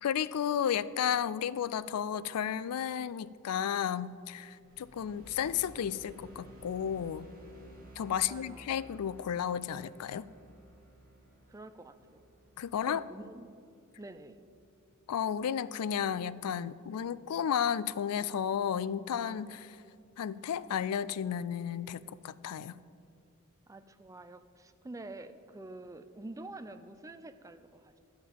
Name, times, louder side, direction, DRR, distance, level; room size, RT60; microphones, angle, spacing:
voice 1, 0.0-7.3 8.0-10.3 12.6-13.0 15.1-19.8 20.2-22.7, left 8 dB, 90° left, 17 dB, 0.4 m, -33 dB
sound 1, 4.6-15.1, right 1 dB, 40° right, 2.0 m, -55 dB
voice 2, 8.1-8.8 11.5-12.2 12.8-13.5 14.0-14.4 23.7-28.0, right 2 dB, 15° right, 9 dB, 0.4 m, -47 dB
11.5 x 6.0 x 7.4 m, 2.4 s
head